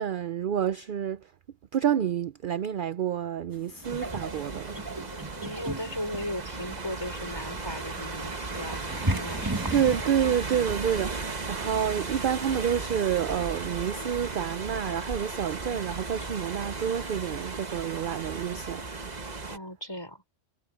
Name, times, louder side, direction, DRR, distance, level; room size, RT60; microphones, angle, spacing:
voice 1, 0.0-1.3 1.7-4.8 9.7-18.8, right 9 dB, 55° right, 0.6 m, -28 dB
sound 1, 3.5-10.1, right 1 dB, 15° right, 1.9 m, -36 dB
sound 2, 3.8-19.6, right 3 dB, 35° right, 1.5 m, -36 dB
voice 2, 5.4-9.6 19.5-20.2, left 1 dB, 20° left, 5.6 m, -37 dB
omnidirectional pair, 1.3 m